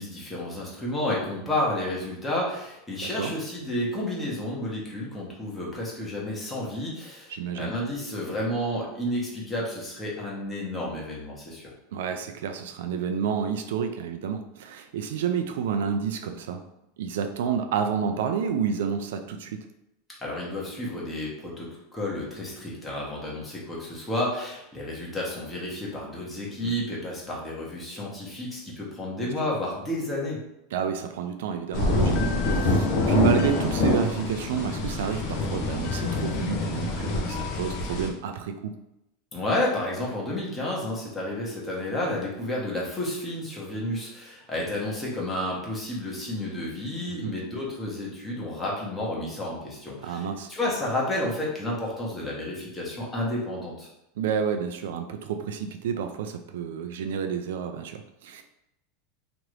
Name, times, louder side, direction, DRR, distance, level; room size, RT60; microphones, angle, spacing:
voice 1, 0.0-11.7 20.2-30.4 39.3-53.9, left 1 dB, 15° left, -4 dB, 1.0 m, -31 dB
voice 2, 3.0-3.3 7.3-7.7 11.9-16.6 17.0-19.6 26.6-26.7 29.2-29.3 30.7-38.7 47.1-47.3 50.0-50.5 54.2-58.4, right 7 dB, 80° right, 7 dB, 0.3 m, -29 dB
sound 1, 31.7-38.1, left 2 dB, 55° left, 0.6 m, -26 dB
2.9 x 2.5 x 3.2 m, 0.86 s
supercardioid pair, 130°, 0 cm